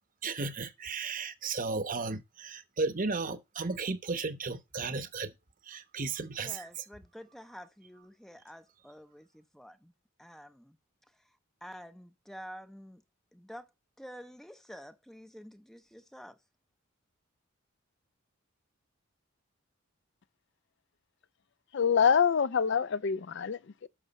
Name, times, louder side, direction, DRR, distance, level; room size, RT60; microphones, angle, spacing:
voice 1, 0.2-5.3 5.7-6.7, right 4 dB, 40° right, 1.0 m, -34 dB
voice 2, 6.4-9.9 10.2-10.7 11.6-13.0 13.3-13.7 14.0-16.4, equal, ahead, 0.6 m, -49 dB
voice 3, 21.7-23.9, left 6 dB, 55° left, 0.4 m, -26 dB
11.0 x 6.3 x 4.2 m
head